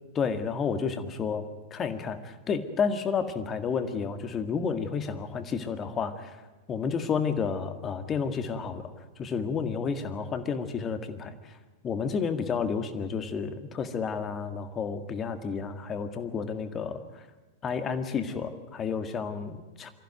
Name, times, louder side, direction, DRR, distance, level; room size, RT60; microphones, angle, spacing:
voice 1, 0.2-1.4 1.7-6.3 6.7-8.8 9.2-11.3 11.8-17.0 17.6-19.9, left 6 dB, 25° left, 9 dB, 1.9 m, -31 dB
24.0 x 15.0 x 9.4 m, 1.3 s
figure-of-eight pair, 90°, 0 cm